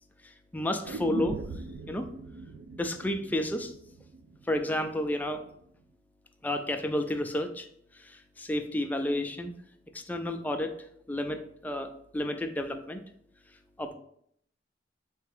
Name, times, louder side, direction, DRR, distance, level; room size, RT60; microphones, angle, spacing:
voice 1, 0.5-1.4 1.9-2.1 2.8-3.7 4.5-5.4 6.4-7.7 8.4-9.5 9.9-10.7 11.1-11.9 12.1-13.0 13.8-13.9, left 1 dB, 10° left, 6 dB, 0.3 m, -31 dB
sound 1, 0.8-4.9 5.2-5.3, right 3 dB, 80° right, 0.3 m, -41 dB
3.6 x 3.3 x 3.3 m, 0.69 s
head